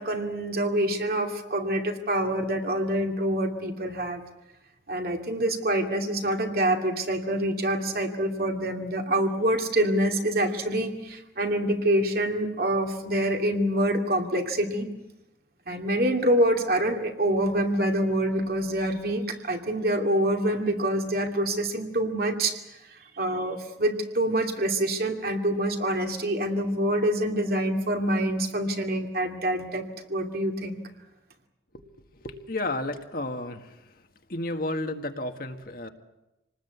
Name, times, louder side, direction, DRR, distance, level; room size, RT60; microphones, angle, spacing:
voice 1, 0.0-4.2 4.9-14.9 15.7-22.6 23.1-29.8 30.1-30.8, right 1 dB, 55° right, 3 dB, 2.7 m, -26 dB
voice 2, 32.2-33.8 34.3-35.9, left 2 dB, 50° left, 5 dB, 1.7 m, -32 dB
27.0 x 19.5 x 8.2 m, 0.96 s
head